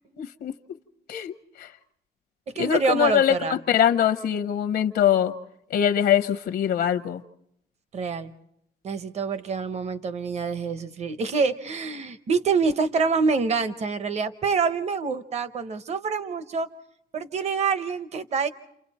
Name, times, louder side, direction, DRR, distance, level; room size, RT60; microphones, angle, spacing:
voice 1, 0.2-0.5 1.1-1.7 2.6-5.3 5.7-7.2, left 10 dB, 75° left, 8 dB, 0.8 m, -23 dB
voice 2, 2.5-3.6 7.9-8.3 8.8-16.7 17.1-18.5, right 5 dB, 40° right, 12 dB, 0.8 m, -26 dB
29.5 x 28.0 x 4.2 m, 0.75 s
wide cardioid pair, 180°, 17 cm